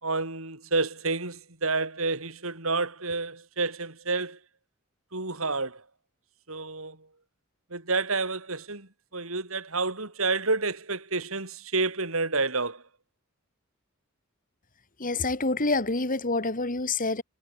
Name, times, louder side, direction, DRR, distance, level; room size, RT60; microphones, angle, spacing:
voice 1, 0.0-4.4 5.1-5.8 6.5-7.0 7.7-12.8, right 3 dB, 70° right, 5.3 m, -29 dB
voice 2, 15.0-17.2, left 3 dB, 40° left, 3.1 m, -27 dB
head